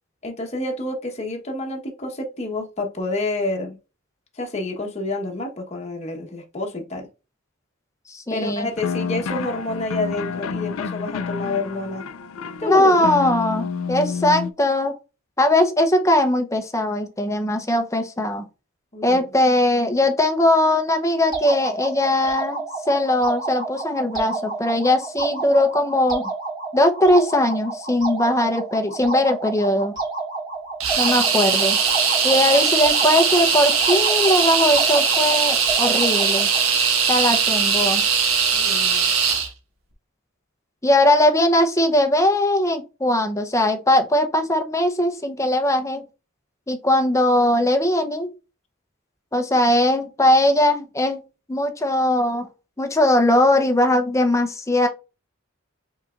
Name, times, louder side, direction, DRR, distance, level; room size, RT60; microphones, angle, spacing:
voice 1, 0.2-3.8 4.3-7.1 8.3-12.1 12.6-13.1 18.9-19.3 31.2-31.3 32.5-32.6 38.5-39.1, left 2 dB, 30° left, 1.1 m, -28 dB
voice 2, 8.1-8.7 12.6-15.0 15.4-18.4 19.0-26.3 26.7-29.9 31.0-31.8 32.2-36.5 37.1-38.0 40.8-46.0 46.7-48.3 49.3-51.2 51.5-52.5 52.8-54.9, left 1 dB, 15° left, 0.7 m, -20 dB
sound 1, 8.8-14.5, left 5 dB, 80° left, 0.4 m, -29 dB
sound 2, 21.3-36.7, right 3 dB, 20° right, 2.4 m, -31 dB
sound 3, 30.8-39.5, right 6 dB, 85° right, 1.3 m, -20 dB
5.5 x 4.0 x 2.4 m
head